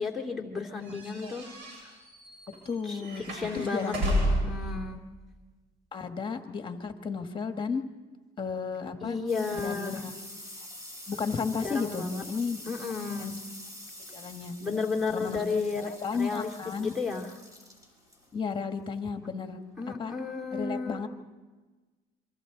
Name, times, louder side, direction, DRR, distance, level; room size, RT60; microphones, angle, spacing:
voice 1, 0.0-1.5 1.8-1.9 2.8-3.9 4.2-5.0 9.0-10.0 11.6-12.2 12.7-13.3 14.6-15.9 16.2-16.5 16.8-17.3 19.8-21.1, left 4 dB, ahead, 3 dB, 2.6 m, -33 dB
voice 2, 0.9-1.4 2.6-4.1 5.9-7.8 8.4-9.2 9.6-10.2 11.1-12.6 13.2-13.4 14.1-14.5 15.1-15.4 15.8-16.9 18.3-19.6 20.0-20.1 20.5-21.1, left 5 dB, 30° left, 6 dB, 1.6 m, -33 dB
sound 1, 0.9-4.6, equal, 90° right, 8.0 m, -31 dB
sound 2, 8.6-19.8, left 1 dB, 20° right, 5.8 m, -47 dB
27.5 x 24.5 x 3.9 m, 1.3 s
cardioid pair, 110°, 17 cm